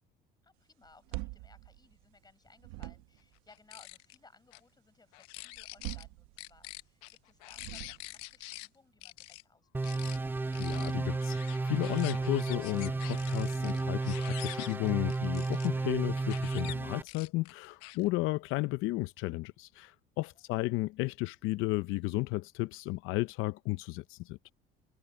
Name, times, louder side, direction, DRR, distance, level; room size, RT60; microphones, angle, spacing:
voice 1, 0.4-10.3 20.3-20.6, left 3 dB, 20° left, 6.0 m, -62 dB
sound 1, 0.8-2.3 2.6-3.4 5.5-6.8 7.5-8.3, right 21 dB, 90° right, 1.0 m, -43 dB
sound 2, 3.5-4.2 4.5-4.6 5.1-6.0 6.4-8.7 9.0-9.4 9.8-10.2 10.5-15.7 16.2-16.7 17.1-18.1, left 21 dB, 90° left, 1.1 m, -46 dB
sound 3, 9.7-17.0, right 3 dB, 10° right, 0.5 m, -33 dB
voice 2, 10.6-24.4, left 20 dB, 75° left, 0.6 m, -33 dB
supercardioid pair, 95°, 21 cm